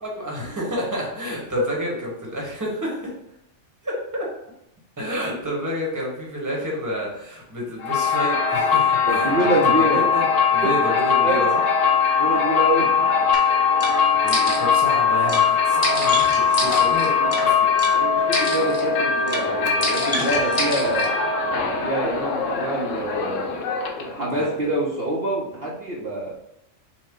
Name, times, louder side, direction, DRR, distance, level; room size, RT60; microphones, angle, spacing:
voice 1, 0.0-3.1 3.8-4.3 5.0-10.2 10.5-11.6 13.9-17.7 24.3-24.7, equal, 15° right, -3 dB, 1.1 m, -30 dB
sound 1, 7.8-24.2, left 6 dB, 85° left, 1.1 m, -21 dB
voice 2, 9.1-10.0 11.2-11.4 12.2-12.9 17.9-21.1 21.8-23.7 24.0-26.3, right 1 dB, 55° right, -4 dB, 1.0 m, -26 dB
sound 2, 13.3-13.4 13.8-13.9 14.3-14.8 15.3-15.4 15.8-17.4 17.8-17.9 18.3-18.8 19.3-19.4 19.8-21.1, left 1 dB, 30° left, 0.9 m, -27 dB
6.2 x 2.2 x 3.7 m, 0.81 s
omnidirectional pair, 1.3 m